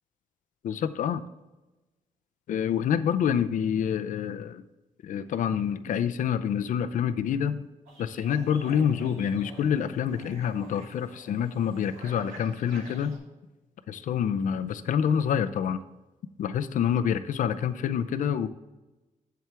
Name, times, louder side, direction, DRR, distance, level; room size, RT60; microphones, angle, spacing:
voice 1, 0.6-1.2 2.5-4.6 5.0-7.6 8.0-13.2 13.9-15.8 16.4-18.5, left 8 dB, 70° left, 11 dB, 0.6 m, -27 dB
sound 1, 7.9-13.2, right 2 dB, 90° right, 2.8 m, -50 dB
7.9 x 7.6 x 3.4 m, 1.1 s
cardioid pair, 130°, 14 cm